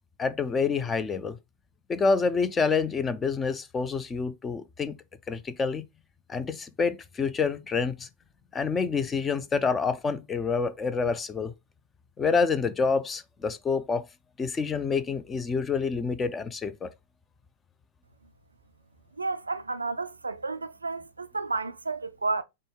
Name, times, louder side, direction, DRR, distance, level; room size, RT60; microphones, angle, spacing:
voice 1, 0.2-1.4 1.9-4.9 5.3-5.8 6.3-8.1 8.5-11.5 12.2-14.1 14.4-16.9, left 5 dB, 20° left, 0.5 m, -27 dB
voice 2, 19.2-22.4, right 3 dB, 80° right, 0.3 m, -31 dB
5.1 x 2.2 x 3.7 m
figure-of-eight pair, 90°, 0 cm